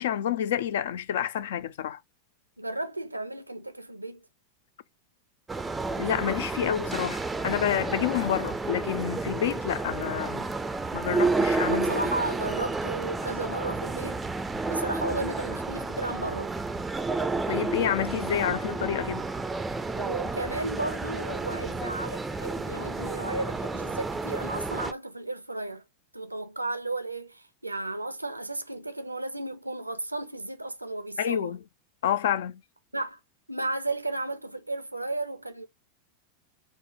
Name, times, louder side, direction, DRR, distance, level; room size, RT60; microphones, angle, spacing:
voice 1, 0.0-2.0 6.0-10.5 10.9-12.0 17.5-19.2 31.2-31.6 32.0-32.6, left 10 dB, 55° left, 0.3 m, -28 dB
voice 2, 2.6-4.2 11.6-14.2 14.7-16.5 20.0-25.8 26.1-31.6 32.9-33.2 33.5-35.7, right 2 dB, 85° right, 0.5 m, -34 dB
sound 1, 5.5-24.9, right 3 dB, 10° right, 0.4 m, -31 dB
5.0 x 2.1 x 3.7 m
figure-of-eight pair, 90°, 0 cm